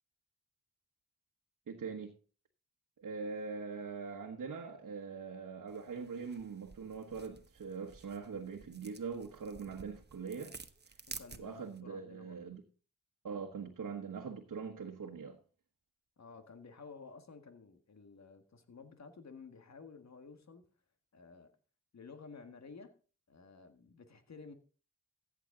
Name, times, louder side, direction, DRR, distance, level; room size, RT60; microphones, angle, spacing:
voice 1, 1.7-2.1 3.0-10.6 11.4-12.6 13.2-15.4, right 5 dB, 75° right, 1.3 m, -42 dB
sound 1, 5.7-11.8, right 4 dB, 35° right, 1.0 m, -53 dB
voice 2, 11.1-12.4 16.2-20.7 21.1-21.5 21.9-22.9 23.3-24.5, left 4 dB, 55° left, 1.7 m, -53 dB
14.5 x 8.2 x 3.8 m
cardioid pair, 60°, 31 cm